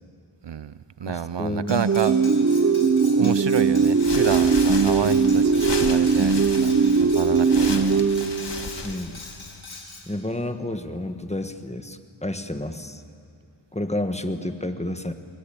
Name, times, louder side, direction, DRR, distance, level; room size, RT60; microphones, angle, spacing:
voice 1, 0.4-0.7 1.0-2.1 3.0-8.0, right 8 dB, 65° right, 15 dB, 0.7 m, -29 dB
voice 2, 1.0-1.8 8.8-9.2 10.1-13.0 13.7-15.1, left 1 dB, 15° left, 7 dB, 1.4 m, -30 dB
Cutlery silverware, 1.7-10.1, left 3 dB, 85° left, 4.5 m, -42 dB
sound 1, 1.7-8.9, right 5 dB, 35° right, 0.8 m, -20 dB
sound 2, 3.9-9.6, left 4 dB, 60° left, 1.6 m, -35 dB
29.0 x 22.0 x 8.7 m, 2.5 s
wide cardioid pair, 70°, 47 cm